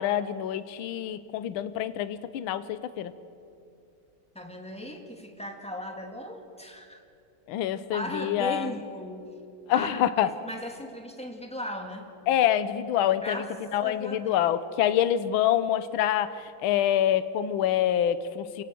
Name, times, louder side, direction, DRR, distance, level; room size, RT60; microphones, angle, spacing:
voice 1, 0.0-3.1 7.5-8.7 9.7-10.3 12.3-13.4 13.7-16.3 16.6-18.6, left 11 dB, 75° left, 13 dB, 1.6 m, -26 dB
voice 2, 4.3-7.0 7.9-9.3 9.7-12.1 13.2-13.5 13.8-14.6, equal, 5° left, 3 dB, 2.0 m, -37 dB
27.5 x 17.5 x 7.7 m, 2.6 s
omnidirectional pair, 2.4 m